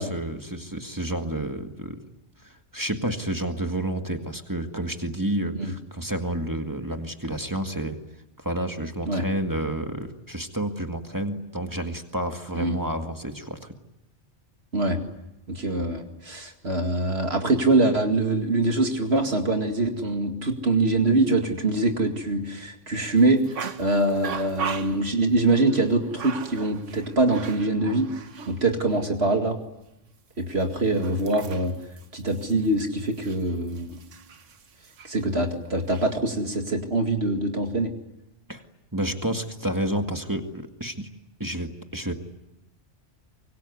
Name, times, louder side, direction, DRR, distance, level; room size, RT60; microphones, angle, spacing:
voice 1, 0.0-2.0 2.4-8.0 8.4-13.7 38.5-38.6 38.9-41.1 41.4-42.1, right 1 dB, 15° right, 5 dB, 1.9 m, -30 dB
voice 2, 15.5-28.1 28.5-29.6 30.4-31.7 32.1-34.0 35.0-37.9, right 2 dB, 60° right, 4 dB, 2.4 m, -24 dB
sound 1, 23.2-28.6 28.9-29.0 30.5-35.2 35.7-36.1, right 6 dB, 85° right, 1.5 m, -39 dB
25.0 x 23.0 x 9.6 m, 0.90 s
omnidirectional pair, 1.2 m